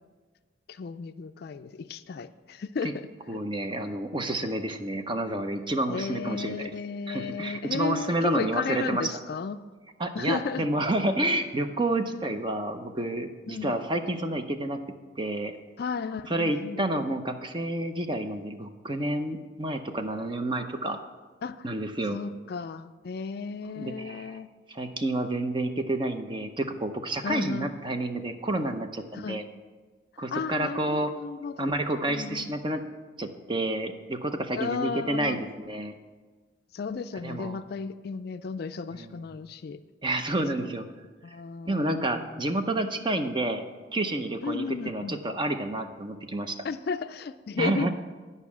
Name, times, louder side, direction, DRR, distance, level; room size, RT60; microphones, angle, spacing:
voice 1, 0.7-3.4 5.9-9.6 10.1-10.7 13.5-13.7 15.8-16.9 21.4-21.7 22.1-24.5 27.2-27.7 29.1-29.4 30.3-31.8 32.1-32.5 34.5-35.5 36.7-39.8 40.6-40.7 41.2-42.4 44.4-45.2 46.6-47.9, left 5 dB, 55° left, 11 dB, 0.3 m, -34 dB
voice 2, 3.3-6.7 7.1-9.1 10.0-14.8 15.2-15.5 16.3-21.0 21.6-22.2 23.8-24.4 24.7-29.4 30.2-31.1 31.6-32.8 33.2-35.9 37.2-37.6 38.9-39.2 40.0-40.9 41.7-43.7 43.9-46.6 47.6-47.9, right 1 dB, 25° right, 7 dB, 0.6 m, -29 dB
10.5 x 5.4 x 7.1 m, 1.3 s
head